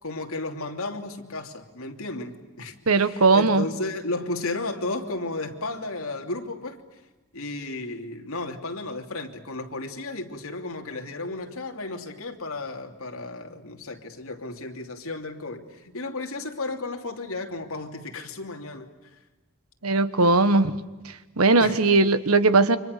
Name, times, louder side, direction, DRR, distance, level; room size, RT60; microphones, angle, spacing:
voice 1, 0.0-7.0 7.3-18.9 21.6-21.8, left 2 dB, 75° left, 3 dB, 3.0 m, -34 dB
voice 2, 2.9-3.6 19.8-20.7 21.4-22.8, right 3 dB, 85° right, 12 dB, 1.4 m, -19 dB
30.0 x 25.5 x 6.7 m, 1.1 s
head